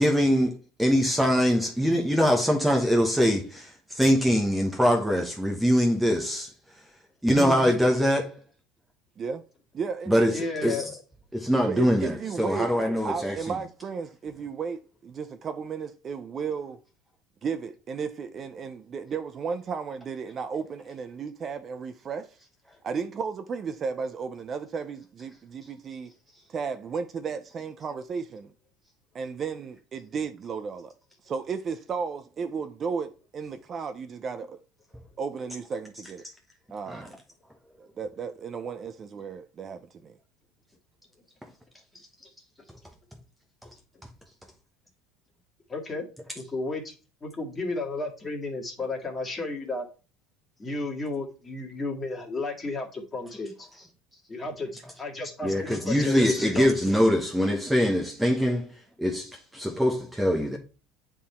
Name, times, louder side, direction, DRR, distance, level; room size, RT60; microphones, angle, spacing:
voice 1, 0.0-6.8 7.2-8.4 10.1-10.9 11.3-13.6 36.9-37.1 55.4-60.6, equal, 5° right, 1.0 m, -23 dB
voice 2, 7.3-7.6 10.3-11.0 45.7-46.1 46.4-46.9 47.2-49.9 50.6-53.7 54.3-56.7, left 3 dB, 20° left, 1.9 m, -33 dB
voice 3, 9.7-10.4 11.7-12.7 13.0-16.8 17.4-22.3 22.8-26.1 26.5-28.5 29.1-30.9 31.2-34.6 35.2-36.2 36.7-37.1 37.8-40.2, right 5 dB, 35° right, 0.5 m, -34 dB
8.6 x 3.7 x 4.3 m
supercardioid pair, 125°, 0 cm